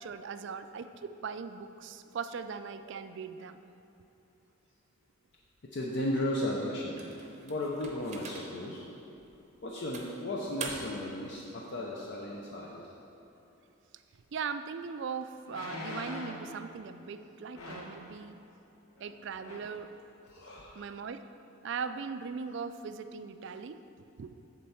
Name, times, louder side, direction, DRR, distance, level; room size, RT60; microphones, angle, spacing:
voice 1, 0.0-3.6 14.3-18.4 19.0-19.9 20.8-21.2 21.6-23.8 24.2-24.3, right 5 dB, 55° right, 11 dB, 0.3 m, -39 dB
voice 2, 5.6-7.0 7.4-8.8 9.6-12.8 18.0-18.1 20.3-20.8, left 1 dB, 50° left, -2 dB, 0.6 m, -35 dB
sound 1, 7.0-8.7 9.2-9.4 9.9-11.1, right 4 dB, 35° right, 0.7 m, -43 dB
sound 2, 14.4-14.5 15.5-16.5 17.5-18.0 19.0-19.1 19.4-19.8 20.3-20.4, left 1 dB, 85° left, 1.2 m, -42 dB
7.5 x 4.4 x 7.0 m, 2.9 s
head